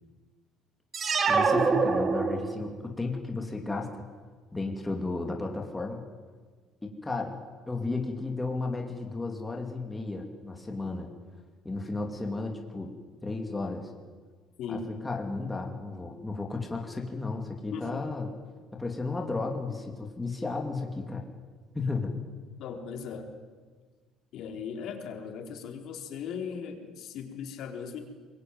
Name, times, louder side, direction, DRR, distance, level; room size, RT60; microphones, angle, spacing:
sound 1, 0.9-2.8, right 4 dB, 30° right, 2.2 m, -25 dB
voice 1, 1.2-4.0 4.5-6.0 6.8-7.3 7.7-11.1 11.6-12.9 13.2-13.9 14.7-18.3 18.7-21.2 21.7-22.2, left 3 dB, 10° left, 1 dB, 2.7 m, -33 dB
voice 2, 14.6-14.9 17.7-18.2 22.6-23.3 24.3-28.0, left 6 dB, 60° left, 4 dB, 3.9 m, -38 dB
24.0 x 21.5 x 9.4 m, 1.5 s
cardioid pair, 135°, 0 cm